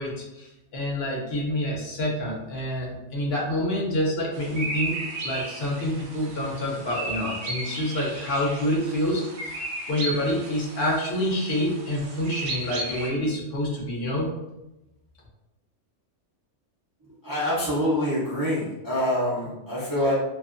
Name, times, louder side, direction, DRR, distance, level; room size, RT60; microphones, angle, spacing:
voice 1, 0.0-5.0 5.2-14.3, left 1 dB, 60° left, -3 dB, 0.9 m, -27 dB
sound 1, 4.3-13.1, right 2 dB, 75° right, 0.9 m, -35 dB
voice 2, 17.2-20.1, equal, 30° right, -7 dB, 0.4 m, -25 dB
2.5 x 2.4 x 2.4 m, 0.97 s
omnidirectional pair, 1.2 m